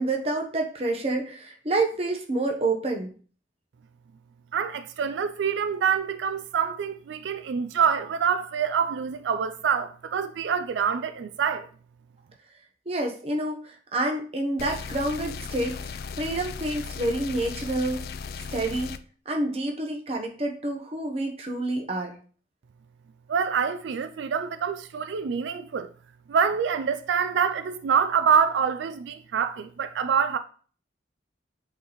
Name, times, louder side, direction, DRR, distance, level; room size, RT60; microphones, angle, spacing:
voice 1, 0.0-3.1 12.9-18.0 18.5-18.9 19.3-22.1, right 2 dB, 35° right, 0.9 m, -28 dB
voice 2, 4.5-11.7 23.3-25.9 26.3-30.4, right 7 dB, 90° right, 0.4 m, -26 dB
sound 1, 14.6-19.0, left 5 dB, 60° left, 0.3 m, -36 dB
7.9 x 4.0 x 3.1 m
head